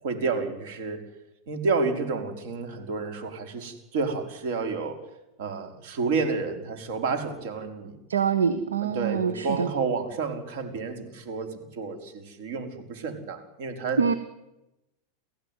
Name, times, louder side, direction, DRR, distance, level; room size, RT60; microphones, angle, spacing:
voice 1, 0.0-1.0 1.5-5.0 5.4-8.0 8.8-14.0, right 4 dB, 55° right, 6 dB, 4.9 m, -30 dB
voice 2, 8.1-9.7 14.0-14.1, right 6 dB, 70° right, 13 dB, 1.3 m, -24 dB
29.5 x 16.5 x 9.5 m, 0.93 s
figure-of-eight pair, 90°, 0 cm